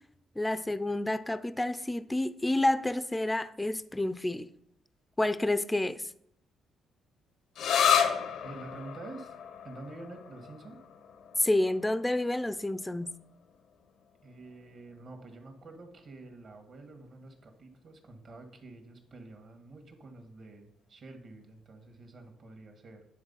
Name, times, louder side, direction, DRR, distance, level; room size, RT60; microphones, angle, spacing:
voice 1, 0.4-4.5 5.2-6.0 11.4-13.1, left 1 dB, 10° left, 0.5 m, -29 dB
sound 1, 7.5-14.9, left 8 dB, 75° left, 0.8 m, -33 dB
voice 2, 8.4-9.4 9.6-10.8 14.2-23.0, right 2 dB, 55° right, 1.9 m, -48 dB
9.5 x 3.7 x 5.6 m
supercardioid pair, 70°, 0 cm